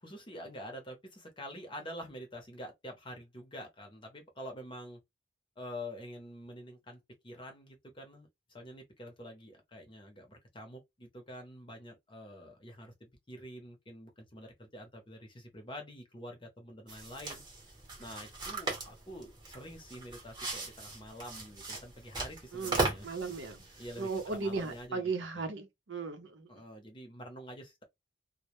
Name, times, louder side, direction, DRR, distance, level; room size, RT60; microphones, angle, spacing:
voice 1, 0.0-5.0 5.6-7.0 7.2-17.4 18.0-23.1 23.8-25.5 26.5-27.8, equal, 25° left, 0.7 m, -47 dB
sound 1, 16.9-24.8, right 2 dB, 25° right, 0.8 m, -39 dB
voice 2, 22.5-23.6 24.0-26.5, right 4 dB, 75° right, 0.6 m, -36 dB
2.1 x 2.1 x 2.9 m
head